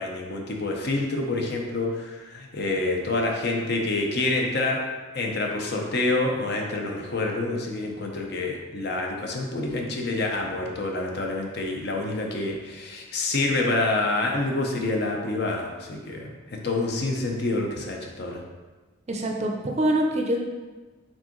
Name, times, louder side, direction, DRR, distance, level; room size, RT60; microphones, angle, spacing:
voice 1, 0.0-4.8 5.1-18.4, left 2 dB, 55° left, 1 dB, 0.6 m, -27 dB
voice 2, 19.1-20.4, right 1 dB, 35° right, 1 dB, 0.5 m, -24 dB
4.5 x 3.7 x 3.0 m, 1.3 s
head